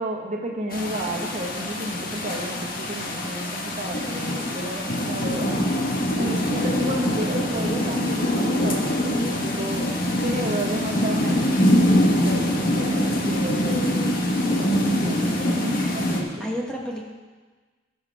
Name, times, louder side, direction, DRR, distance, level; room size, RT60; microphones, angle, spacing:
voice 1, 0.0-5.5 6.2-9.9 10.2-11.7 12.1-14.1 14.5-16.5, right 1 dB, 40° right, 1 dB, 1.4 m, -31 dB
sound 1, 0.7-16.2, left 1 dB, 50° left, 1.5 m, -24 dB
voice 2, 5.9-6.2 16.4-17.1, equal, 5° left, -2 dB, 1.2 m, -32 dB
18.0 x 6.9 x 3.5 m, 1.4 s
head